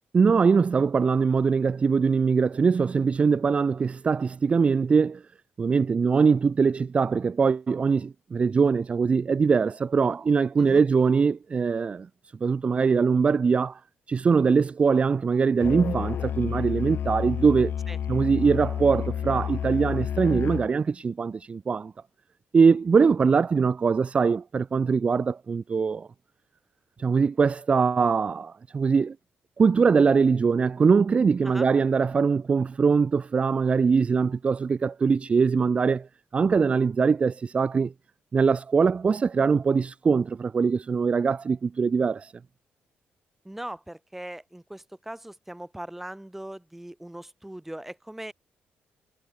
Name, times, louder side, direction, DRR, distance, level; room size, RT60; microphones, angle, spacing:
voice 1, 0.1-5.2 5.6-12.1 12.4-13.8 14.1-17.7 18.1-21.9 22.5-26.1 27.0-29.2 29.6-36.1 36.3-37.9 38.3-42.3, right 5 dB, 30° right, 0.4 m, -22 dB
Musical instrument, 15.6-20.7, left 9 dB, 55° left, 0.8 m, -30 dB
voice 2, 43.5-48.3, right 1 dB, 5° right, 5.2 m, -40 dB
cardioid pair, 120°, 4 cm